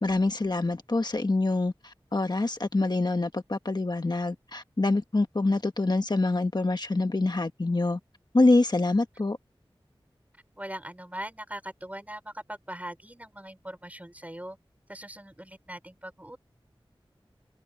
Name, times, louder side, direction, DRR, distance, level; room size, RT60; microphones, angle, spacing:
voice 1, 0.0-8.0 8.3-9.4, left 2 dB, 45° left, 1.4 m, -25 dB
voice 2, 10.6-14.6 14.9-16.4, right 1 dB, 15° right, 4.9 m, -41 dB
wide cardioid pair, 60°, 10 cm